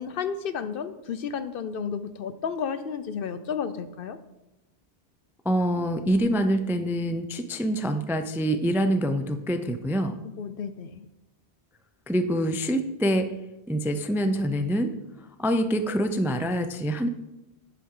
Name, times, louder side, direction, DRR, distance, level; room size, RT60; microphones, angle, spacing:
voice 1, 0.0-4.2 10.2-11.1, left 6 dB, 60° left, 11 dB, 0.8 m, -32 dB
voice 2, 5.5-10.1 12.1-13.3 13.7-14.9 15.4-17.1, equal, 5° right, 7 dB, 0.3 m, -25 dB
10.5 x 7.6 x 3.7 m, 0.94 s
omnidirectional pair, 1.1 m